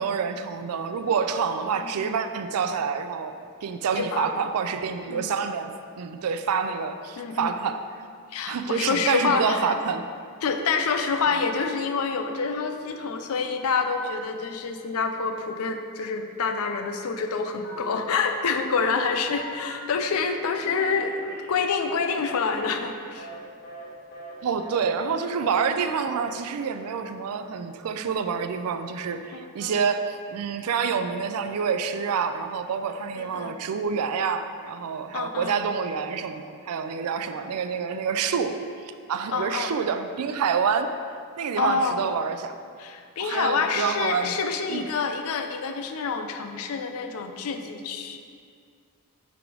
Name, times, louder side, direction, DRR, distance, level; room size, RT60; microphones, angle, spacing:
voice 1, 0.0-8.1 8.5-10.0 24.4-38.6 38.8-40.9 41.4-42.5 43.2-44.3 44.7-44.9, right 6 dB, 75° right, 9 dB, 0.4 m, -27 dB
voice 2, 1.7-2.2 4.0-4.5 5.1-5.3 7.2-7.6 8.3-9.7 10.4-21.2 21.5-23.3 29.3-29.7 33.2-33.6 35.1-35.6 39.3-39.7 41.6-42.0 42.8-48.2, left 5 dB, 70° left, 6 dB, 0.5 m, -27 dB
Telephone, 17.6-18.2 18.6-20.2 20.6-23.4 23.6-23.9 24.1-24.3 24.6-24.8 25.1-25.3 25.5-25.8 26.0-26.2, equal, 50° left, 1.1 m, -41 dB
5.9 x 3.5 x 4.8 m, 2.2 s
head